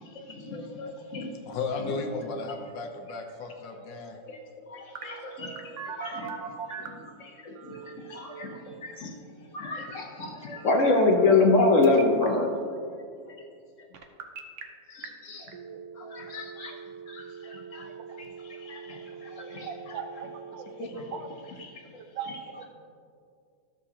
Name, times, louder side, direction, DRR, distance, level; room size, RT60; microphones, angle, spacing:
voice 1, 0.2-1.3 4.3-4.4 4.7-5.5 6.0-6.3 6.8-7.8 8.1-9.1 9.5-12.5 14.9-15.5 16.0-16.7 17.1-17.9 18.6-20.0 20.8-21.0 21.5-21.7 22.3-22.4, left 3 dB, 50° left, 1 dB, 1.0 m, -27 dB
voice 2, 1.5-4.2, left 3 dB, 75° left, 4 dB, 1.5 m, -34 dB
Telephone, 4.9-7.0 7.5-8.6 10.6-11.6 11.8-12.3 13.9-14.6 15.0-15.1 15.5-20.5, right 7 dB, 60° right, 0.8 m, -42 dB
voice 3, 19.7-20.7 21.1-21.3 22.2-22.7, right 7 dB, 90° right, 6 dB, 1.4 m, -38 dB
13.5 x 6.8 x 2.8 m, 2.4 s
omnidirectional pair, 2.0 m